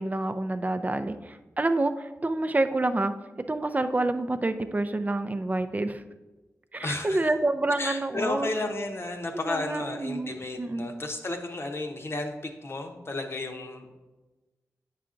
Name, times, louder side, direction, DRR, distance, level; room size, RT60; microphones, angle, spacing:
voice 1, 0.0-3.1 3.5-6.0 6.7-8.5 9.5-10.9, right 2 dB, 25° right, 9 dB, 0.5 m, -28 dB
voice 2, 6.8-7.3 7.8-14.0, left 2 dB, 45° left, 4 dB, 0.9 m, -33 dB
8.5 x 5.7 x 2.5 m, 1.1 s
cardioid pair, 55°, 6 cm